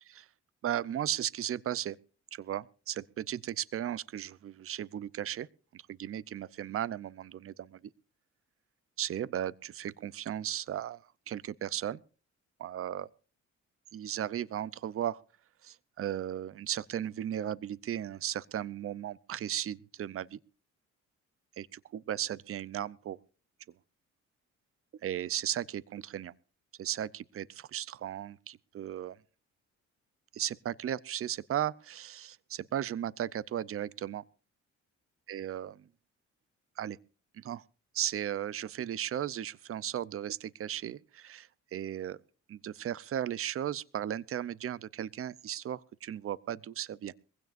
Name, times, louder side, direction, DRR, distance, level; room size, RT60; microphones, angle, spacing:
voice 1, 0.6-2.0 2.3-5.5 5.7-7.8 9.0-11.0 11.3-12.0 12.6-13.1 13.9-15.2 15.6-20.4 21.6-23.2 25.0-26.3 26.8-29.2 30.3-34.2 35.3-35.9 36.8-37.0 37.3-37.6 37.9-42.2 42.5-47.1, right 11 dB, 45° right, 0.6 m, -36 dB
22.0 x 16.0 x 2.6 m
cardioid pair, 90°, 30 cm